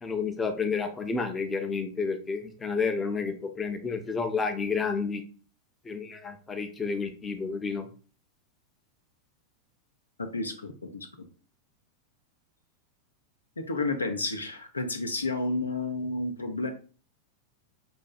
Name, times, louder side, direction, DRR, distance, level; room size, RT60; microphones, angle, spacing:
voice 1, 0.0-5.2 5.9-7.9, left 5 dB, 15° left, 6 dB, 0.5 m, -30 dB
voice 2, 10.2-11.1 13.6-16.7, left 2 dB, 80° left, 6 dB, 0.4 m, -31 dB
5.3 x 2.6 x 2.3 m, 0.38 s
figure-of-eight pair, 90°, 0 cm